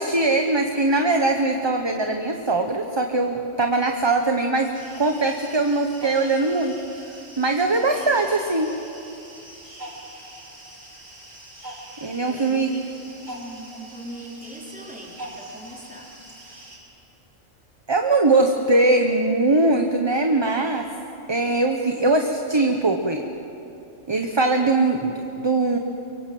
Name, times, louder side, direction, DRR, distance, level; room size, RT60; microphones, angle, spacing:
voice 1, 0.0-4.7 5.0-6.7 7.0-8.7 12.0-12.7 17.9-20.9 21.3-23.2 24.1-25.8, right 2 dB, 20° right, 4 dB, 1.1 m, -21 dB
sound 1, 4.7-16.8, right 1 dB, 90° right, 5.2 m, -42 dB
voice 2, 12.2-16.1, equal, 5° right, -3 dB, 4.0 m, -40 dB
24.5 x 23.0 x 7.8 m, 2.9 s
omnidirectional pair, 1.3 m